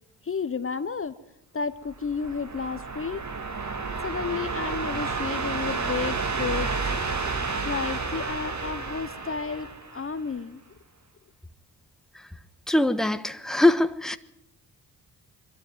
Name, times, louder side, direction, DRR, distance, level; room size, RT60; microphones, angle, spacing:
voice 1, 0.2-1.1 1.5-3.2 4.0-6.7 7.7-10.6, left 5 dB, 30° left, 1.0 m, -32 dB
sound 1, 1.9-10.4, right 4 dB, 40° right, 2.6 m, -31 dB
voice 2, 12.7-14.2, left 1 dB, ahead, 1.2 m, -22 dB
23.5 x 13.0 x 9.3 m
cardioid pair, 75°, 42 cm